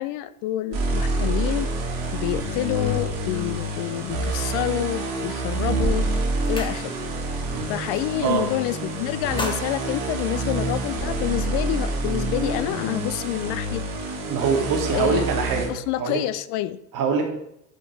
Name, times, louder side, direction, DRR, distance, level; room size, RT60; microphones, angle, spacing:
voice 1, 0.0-1.7 2.1-6.1 6.5-7.0 7.7-13.8 14.9-15.2 15.7-16.8, left 14 dB, 45° left, 15 dB, 0.5 m, -28 dB
sound 1, 0.7-15.7, right 2 dB, 65° right, 2.5 m, -27 dB
sound 2, 6.4-7.3 7.6-7.9 8.2-8.8 9.1-11.0, left 2 dB, 10° left, 1.0 m, -37 dB
voice 2, 8.2-8.5 14.3-16.2 16.9-17.3, right 5 dB, 45° right, 2 dB, 1.9 m, -24 dB
11.0 x 5.0 x 3.5 m, 0.78 s
figure-of-eight pair, 70°, 45 cm